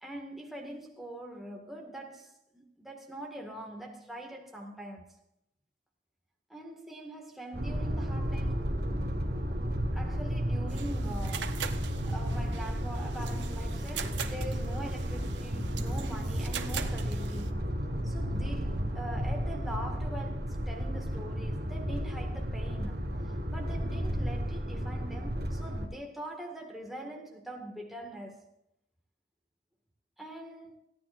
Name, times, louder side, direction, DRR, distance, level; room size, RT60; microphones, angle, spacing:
voice 1, 0.0-5.1 6.5-8.7 9.9-11.6 12.1-17.7 18.0-28.5 30.2-30.8, right 1 dB, ahead, 1.8 m, -43 dB
sound 1, 7.5-25.9, equal, 55° right, 1.9 m, -33 dB
sound 2, 10.7-17.5, right 8 dB, 75° right, 0.9 m, -42 dB
28.0 x 9.8 x 2.5 m
head